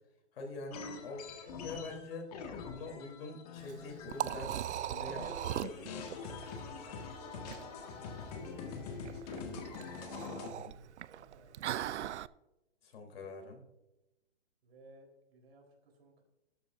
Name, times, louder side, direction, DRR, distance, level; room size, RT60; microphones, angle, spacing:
voice 1, 0.3-2.3 2.7-4.5 4.9-5.3 5.6-5.9 10.4-10.8 12.8-13.6, left 3 dB, 60° left, 3 dB, 3.4 m, -44 dB
sound 1, 0.7-4.8 5.1-10.5, left 5 dB, 35° left, 1.8 m, -45 dB
Liquid, 3.6-12.3, right 11 dB, 80° right, 0.5 m, -40 dB
voice 2, 6.7-8.8 10.4-11.7 14.6-16.2, right 2 dB, 65° right, 2 dB, 4.0 m, -61 dB
12.5 x 9.4 x 2.6 m, 0.93 s
hypercardioid pair, 155°, 34 cm